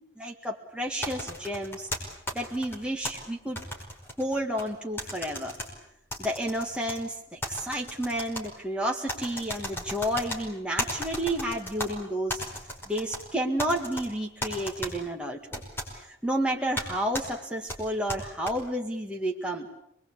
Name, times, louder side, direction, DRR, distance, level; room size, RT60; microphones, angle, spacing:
voice 1, 0.2-1.9 2.3-3.6 4.2-5.5 6.2-12.4 12.9-15.6 15.9-19.7, right 1 dB, 5° right, 0 dB, 2.0 m, -31 dB
sound 1, 1.0-3.1 3.6-4.7 5.0-5.7 6.1-7.0 7.4-8.5 9.1-10.4 10.8-11.9 12.3-13.2 13.6-14.1 14.4-14.9 15.5-15.9 16.8-16.9 17.1-17.3 17.7-18.5, equal, 10° left, 5.3 m, -35 dB
27.0 x 21.5 x 8.6 m, 0.77 s
head